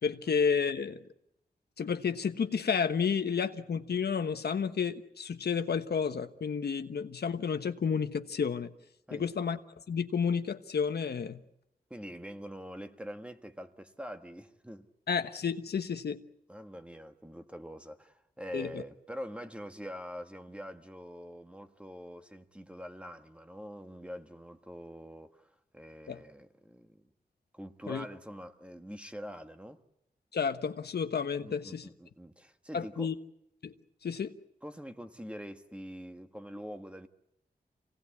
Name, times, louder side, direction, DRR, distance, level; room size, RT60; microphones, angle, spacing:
voice 1, 0.0-1.0 1.8-8.7 9.1-9.6 9.9-11.4 15.1-16.2 18.5-18.8 26.1-26.2 27.9-28.0 30.3-31.9 32.7-33.1 33.6-33.7 34.0-34.3, left 6 dB, 80° left, 1.3 m, -31 dB
voice 2, 11.9-14.9 16.5-27.1 27.5-29.8 31.4-33.1 34.6-37.1, equal, 5° right, 1.5 m, -44 dB
27.0 x 18.5 x 8.5 m
wide cardioid pair, 115°, 16 cm